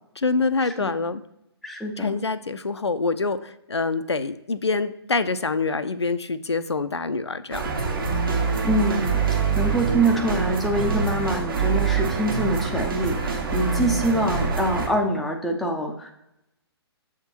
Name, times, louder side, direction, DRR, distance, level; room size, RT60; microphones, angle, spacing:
voice 1, 0.2-1.2 2.0-7.7, left 4 dB, 85° left, 12 dB, 0.4 m, -26 dB
voice 2, 1.6-2.3 8.6-16.1, right 1 dB, ahead, 0 dB, 0.4 m, -25 dB
sound 1, 7.5-14.9, right 5 dB, 55° right, 1.3 m, -25 dB
7.1 x 3.6 x 4.2 m, 0.85 s
figure-of-eight pair, 130°, 14 cm